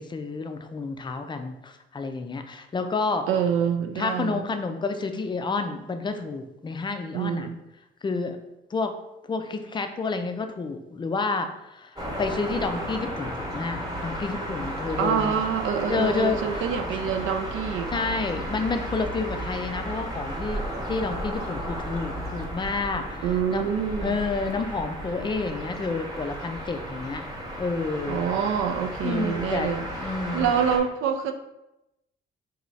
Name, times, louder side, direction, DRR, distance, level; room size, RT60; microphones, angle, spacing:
voice 1, 0.0-3.2 4.0-7.5 8.0-8.4 8.7-8.9 9.3-11.9 12.2-15.4 15.9-16.7 17.0-17.2 17.9-23.7 24.0-27.2 27.6-28.2 29.0-30.5, left 4 dB, 25° left, 7 dB, 0.4 m, -30 dB
voice 2, 3.3-4.4 7.1-7.6 15.0-17.9 23.2-24.2 28.1-29.9 30.3-31.3, right 7 dB, 80° right, 6 dB, 0.4 m, -26 dB
sound 1, 12.0-30.8, equal, 20° right, 1.0 m, -34 dB
3.1 x 2.3 x 3.9 m, 0.91 s
cardioid pair, 90°, 20 cm